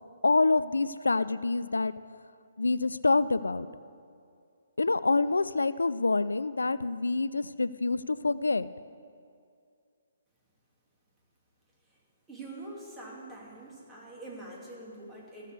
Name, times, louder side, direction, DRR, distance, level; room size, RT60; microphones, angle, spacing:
voice 1, 0.2-1.9 2.6-3.7 4.8-8.7, left 3 dB, 90° left, 15 dB, 0.3 m, -26 dB
voice 2, 12.3-15.5, right 2 dB, 10° right, -4 dB, 2.6 m, -44 dB
15.0 x 6.5 x 6.6 m, 2.3 s
hypercardioid pair, 140°, 0 cm